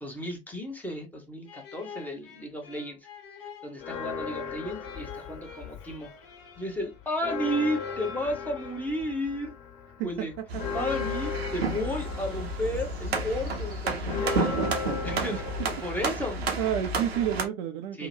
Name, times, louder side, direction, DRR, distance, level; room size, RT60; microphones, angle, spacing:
voice 1, 0.0-3.0 3.6-6.1 6.6-9.5 10.0-10.3 10.7-14.6 15.0-16.6 18.0-18.1, equal, 5° left, 0.9 m, -33 dB
sound 1, 1.4-9.5, left 6 dB, 65° left, 1.0 m, -48 dB
Church bell, 3.8-6.2 6.5-6.6 7.0-17.0, left 6 dB, 35° left, 1.4 m, -37 dB
voice 2, 10.0-10.6 15.6-15.7 16.6-18.1, right 10 dB, 45° right, 0.5 m, -30 dB
sound 2, 10.5-17.5, right 2 dB, 80° right, 0.7 m, -31 dB
2.8 x 2.1 x 2.6 m
figure-of-eight pair, 85°, 30 cm